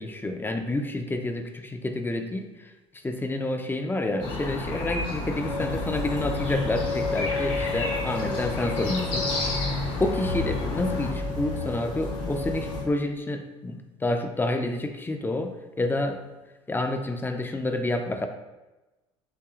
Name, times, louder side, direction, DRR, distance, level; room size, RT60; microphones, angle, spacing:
voice 1, 0.0-2.7 3.0-9.3 10.0-16.2 16.7-18.3, left 2 dB, 15° left, 6 dB, 0.5 m, -29 dB
sound 1, 4.2-11.1, left 2 dB, 65° left, 1.2 m, -32 dB
sound 2, 5.4-12.8, left 3 dB, 85° left, 1.2 m, -31 dB
5.7 x 3.0 x 2.4 m, 1.1 s
hypercardioid pair, 65°, 16 cm